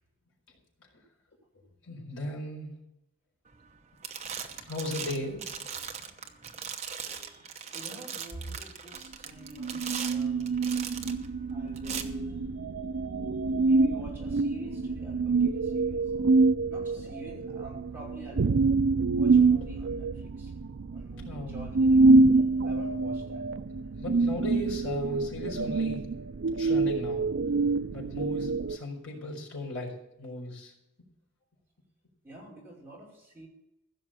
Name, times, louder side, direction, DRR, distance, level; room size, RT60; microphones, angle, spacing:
voice 1, 1.8-2.7 4.6-5.4 21.2-21.8 24.0-26.2 26.6-27.3 27.9-30.7, left 2 dB, 75° left, -2 dB, 4.6 m, -37 dB
sound 1, 3.5-3.8 4.0-11.3 11.8-12.0, right 7 dB, 30° right, 1.0 m, -39 dB
voice 2, 6.2-10.7 11.5-12.4 13.3-16.0 16.7-18.5 19.1-20.5 20.8-22.2 22.6-23.4 32.2-33.5, right 1 dB, 10° right, -6 dB, 5.7 m, -47 dB
sound 2, 9.6-28.8, right 3 dB, 60° right, 0.4 m, -26 dB
15.5 x 6.6 x 7.6 m, 0.85 s
head